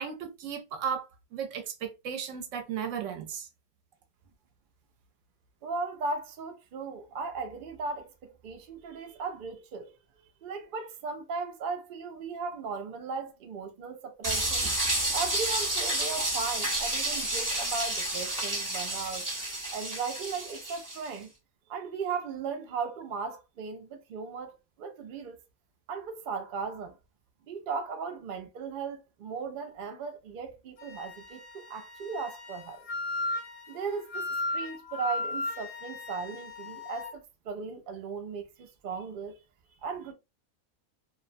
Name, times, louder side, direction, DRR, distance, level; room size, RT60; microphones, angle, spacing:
voice 1, 0.0-3.5, right 7 dB, 65° right, 0.9 m, -35 dB
voice 2, 5.6-9.9 10.4-14.7 15.1-19.3 19.7-21.3 21.7-24.5 24.8-25.4 25.9-27.0 27.5-32.9 33.7-34.3 34.5-39.4 39.8-40.1, right 5 dB, 90° right, 0.4 m, -37 dB
sound 1, 14.2-21.1, right 1 dB, 30° right, 0.4 m, -30 dB
Wind instrument woodwind instrument, 30.8-37.2, left 2 dB, 80° left, 1.1 m, -36 dB
2.5 x 2.1 x 2.4 m
omnidirectional pair, 1.5 m